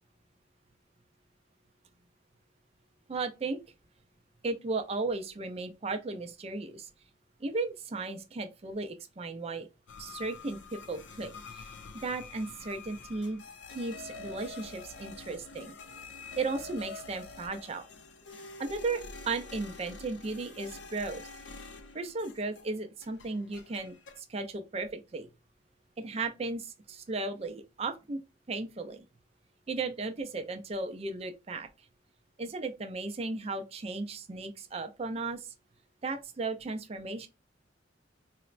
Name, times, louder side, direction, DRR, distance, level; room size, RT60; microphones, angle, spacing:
voice 1, 3.1-3.6 4.4-6.9 7.4-9.7 10.0-11.7 12.0-13.4 13.7-15.7 16.4-17.9 18.4-21.3 21.9-24.0 24.3-25.3 26.0-28.2 28.5-29.0 29.7-31.7 32.4-35.5 36.0-37.3, right 3 dB, 35° right, 0.4 m, -35 dB
sound 1, 9.9-22.8 23.0-24.2, left 3 dB, 80° left, 0.5 m, -47 dB
4.0 x 2.1 x 2.4 m
head